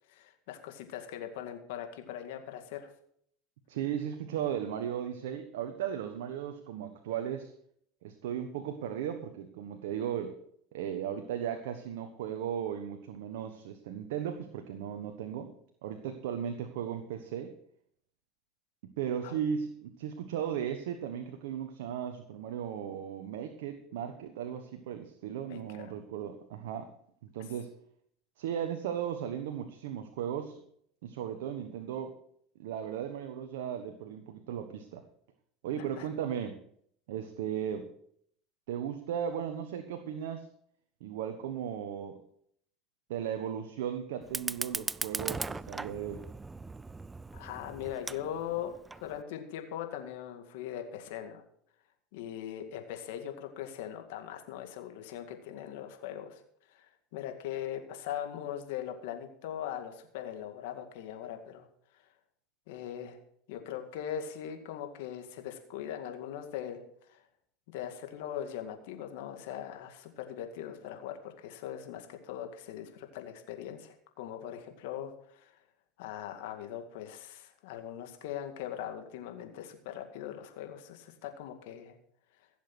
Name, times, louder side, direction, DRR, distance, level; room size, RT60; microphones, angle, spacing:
voice 1, 0.1-2.9 19.2-19.4 25.5-25.9 36.0-36.1 47.3-51.4 52.1-56.4 56.7-61.7 62.7-63.2 63.5-66.8 67.1-67.2 67.7-75.5 76.0-82.0, left 10 dB, 75° left, 6 dB, 2.0 m, -40 dB
voice 2, 3.7-7.5 8.0-10.4 10.7-15.5 15.8-17.5 18.8-26.9 27.2-27.7 28.4-30.6 31.0-32.1 32.6-35.0 35.6-36.6 37.1-37.9 38.7-40.5 41.0-42.2 43.1-46.2, right 9 dB, 80° right, 7 dB, 1.2 m, -36 dB
Fire, 44.2-49.2, right 3 dB, 15° right, 0.4 m, -39 dB
16.0 x 7.3 x 6.1 m, 0.66 s
hypercardioid pair, 95°, 0 cm